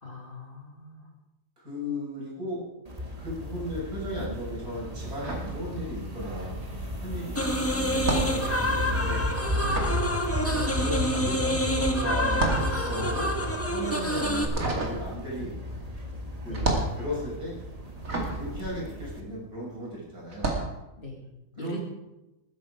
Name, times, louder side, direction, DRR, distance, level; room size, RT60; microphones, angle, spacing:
voice 1, 0.0-1.1 9.6-10.0 16.4-16.6 21.0-21.3 21.6-21.8, left 2 dB, 35° left, 0 dB, 2.7 m, -41 dB
voice 2, 1.6-2.6 3.2-9.3 10.5-13.3 13.7-15.5 16.4-17.5 18.4-20.5 21.6-21.8, equal, 80° right, -4 dB, 6.6 m, -36 dB
sound 1, 2.9-19.2, left 1 dB, 25° right, 1.7 m, -34 dB
sound 2, 5.0-6.3 6.5-19.7 20.2-20.8, right 2 dB, 60° right, 2.7 m, -32 dB
sound 3, 7.3-14.5, equal, 10° left, 1.5 m, -28 dB
20.0 x 10.5 x 4.8 m, 0.97 s
omnidirectional pair, 1.6 m